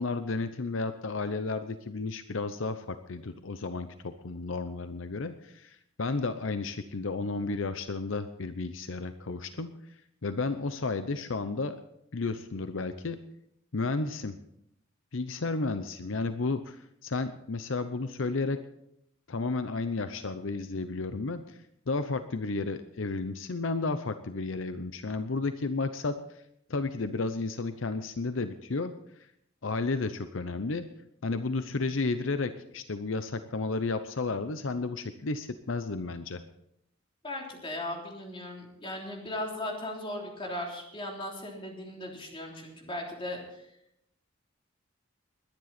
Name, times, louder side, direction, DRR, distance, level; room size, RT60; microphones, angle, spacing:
voice 1, 0.0-9.7 10.2-11.8 12.1-13.2 13.7-14.4 15.1-18.6 19.3-21.6 21.9-26.4 26.7-28.9 29.6-30.9 31.2-36.4, left 3 dB, 75° left, 10 dB, 0.7 m, -32 dB
voice 2, 37.2-43.6, left 1 dB, 25° left, 0 dB, 3.4 m, -37 dB
21.0 x 10.5 x 4.2 m, 0.75 s
head